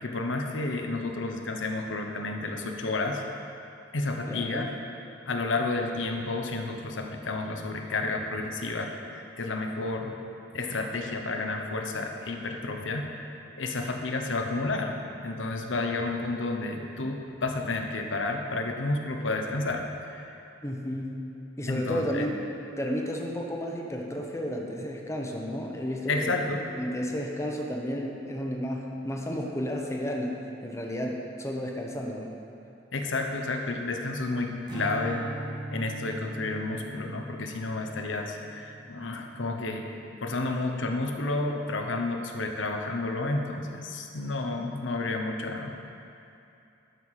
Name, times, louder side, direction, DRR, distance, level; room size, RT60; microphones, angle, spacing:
voice 1, 0.0-3.2 3.9-4.7 5.3-10.2 10.5-13.1 13.6-20.3 21.7-22.3 26.1-26.6 32.9-35.3 35.7-40.0 40.2-45.7, left 2 dB, 75° left, 3 dB, 0.9 m, -31 dB
voice 2, 4.3-4.7 20.6-21.2 21.6-22.3 22.8-26.3 26.7-32.3, equal, 15° left, 0 dB, 1.0 m, -32 dB
Strum, 34.7-41.1, right 1 dB, 25° right, 1.3 m, -40 dB
12.5 x 5.9 x 4.8 m, 2.7 s
head